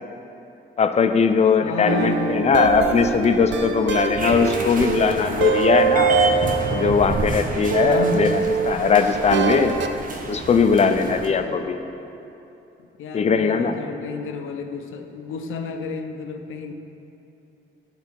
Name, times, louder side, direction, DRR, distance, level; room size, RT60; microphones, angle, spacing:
voice 1, 0.8-6.1 6.7-9.8 10.3-11.8 13.1-13.7, left 5 dB, 35° left, 8 dB, 0.4 m, -19 dB
voice 2, 1.6-2.4 7.8-8.4 11.3-11.7 13.0-16.7, left 4 dB, 85° left, 6 dB, 0.5 m, -31 dB
sound 1, 1.9-7.3 7.7-10.0, right 6 dB, 65° right, 0.4 m, -24 dB
sound 2, 4.2-11.3, right 3 dB, 40° right, 0.8 m, -28 dB
8.2 x 4.0 x 5.2 m, 2.9 s
cardioid pair, 95°, 20 cm